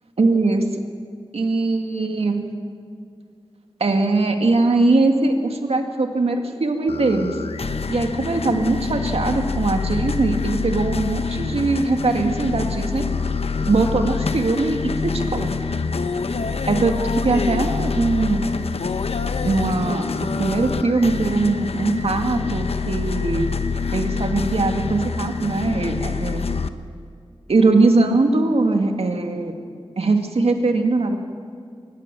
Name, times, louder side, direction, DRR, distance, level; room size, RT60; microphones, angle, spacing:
voice 1, 0.2-0.6 1.3-2.5 3.8-7.3 7.9-13.1 13.7-15.5 16.7-18.6 19.4-23.5 23.9-26.4 27.5-29.5 30.0-31.2, right 3 dB, 90° right, 4 dB, 2.1 m, -21 dB
sound 1, 6.9-26.7, left 4 dB, 85° left, 0.9 m, -26 dB
24.0 x 19.5 x 6.9 m, 2.3 s
wide cardioid pair, 75°, 10 cm